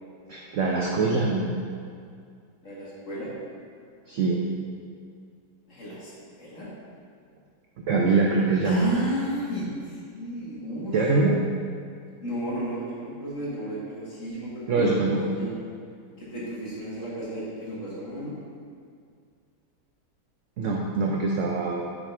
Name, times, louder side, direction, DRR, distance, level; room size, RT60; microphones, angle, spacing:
voice 1, 0.3-1.6 4.1-4.4 7.9-8.9 10.9-11.3 14.7-15.2 20.6-21.8, right 3 dB, 75° right, -1 dB, 0.7 m, -23 dB
voice 2, 2.6-3.3 5.7-6.7 8.6-11.0 12.2-15.5 16.2-18.4, equal, 45° left, -7 dB, 1.8 m, -33 dB
6.2 x 4.2 x 4.5 m, 2.2 s
omnidirectional pair, 1.9 m